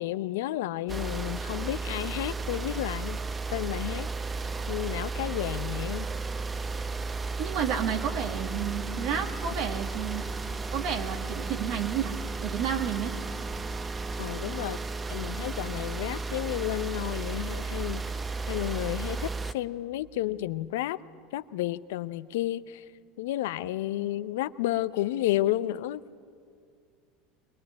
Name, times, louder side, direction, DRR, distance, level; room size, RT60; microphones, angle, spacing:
voice 1, 0.0-3.2 3.5-4.1 4.7-6.1 14.2-14.8 15.1-18.0 18.5-21.0 21.3-22.8 23.2-26.0, left 14 dB, 75° left, 16 dB, 0.6 m, -31 dB
sound 1, 0.9-19.5, right 3 dB, 20° right, 0.9 m, -34 dB
voice 2, 7.4-10.2 10.7-12.1 12.4-13.1, right 8 dB, 65° right, 2 dB, 1.9 m, -31 dB
22.0 x 21.5 x 9.6 m, 2.2 s
hypercardioid pair, 85°, 0 cm